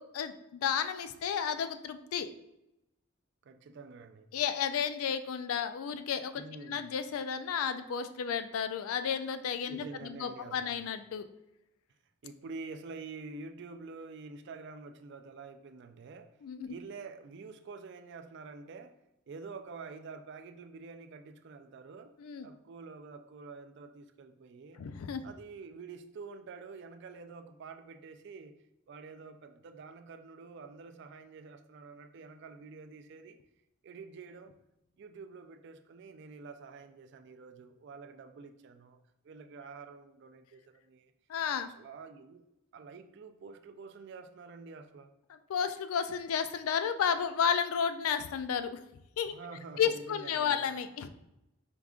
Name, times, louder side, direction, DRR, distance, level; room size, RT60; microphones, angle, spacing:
voice 1, 0.0-2.3 4.3-6.4 6.7-11.3 16.4-16.7 22.2-22.5 24.8-25.3 41.3-41.7 45.5-48.8 49.2-49.4 49.8-51.1, left 7 dB, 80° left, 10 dB, 0.3 m, -32 dB
voice 2, 3.4-4.3 6.3-7.0 9.7-10.7 12.2-16.3 16.7-19.0 19.3-22.1 22.4-24.8 25.2-28.6 28.9-33.4 33.8-34.6 35.0-39.0 39.2-41.1 41.7-45.1 49.3-50.7, right 4 dB, 55° right, 8 dB, 0.3 m, -48 dB
4.6 x 2.4 x 3.5 m, 0.87 s
head